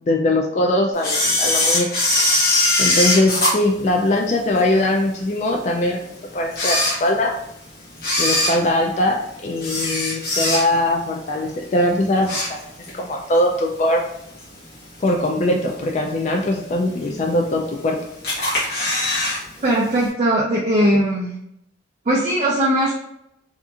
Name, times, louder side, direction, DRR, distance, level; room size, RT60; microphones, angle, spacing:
voice 1, 0.0-1.9 2.8-6.0 6.3-7.3 8.2-12.6 12.9-14.1 15.0-18.0, left 1 dB, 40° left, 0 dB, 0.3 m, -21 dB
Camera, 1.0-4.6 5.1-5.2 5.9-6.0 6.4-7.5 7.9-11.0 11.3-11.6 12.0-13.0 13.3-13.4 14.4-14.5 15.1-15.5 15.9-16.0 16.2-16.3 16.4-16.5 17.3-17.8 18.2-19.4 19.7-19.8 20.0-20.1, left 1 dB, 55° left, 1.0 m, -21 dB
voice 2, 19.6-21.3 22.1-22.9, right 1 dB, 40° right, -4 dB, 0.4 m, -19 dB
2.8 x 2.4 x 2.4 m, 0.77 s
head